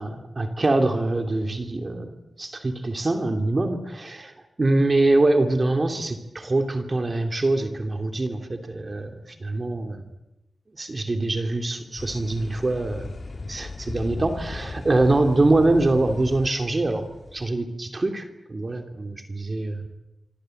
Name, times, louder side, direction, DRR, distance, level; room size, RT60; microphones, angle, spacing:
voice 1, 0.0-2.1 2.4-10.0 10.7-13.1 13.4-19.9, right 2 dB, 40° right, 6 dB, 2.9 m, -24 dB
sound 1, 12.0-17.5, left 3 dB, 50° left, 2.4 m, -37 dB
25.5 x 25.5 x 7.9 m, 0.94 s
wide cardioid pair, 105°, 0 cm